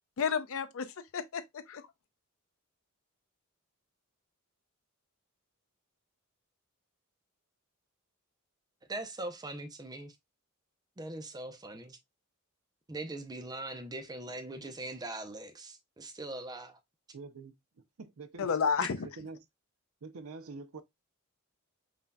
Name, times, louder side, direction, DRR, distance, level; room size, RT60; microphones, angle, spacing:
voice 1, 0.2-1.4 1.7-1.9 18.4-19.1, left 6 dB, 65° left, 0.5 m, -31 dB
voice 2, 8.9-10.1 11.0-12.0 12.9-16.8, right 2 dB, 20° right, 0.6 m, -41 dB
voice 3, 17.1-17.5 18.0-18.5 19.2-19.4 20.0-20.8, right 4 dB, 70° right, 0.6 m, -45 dB
5.5 x 2.7 x 2.2 m
head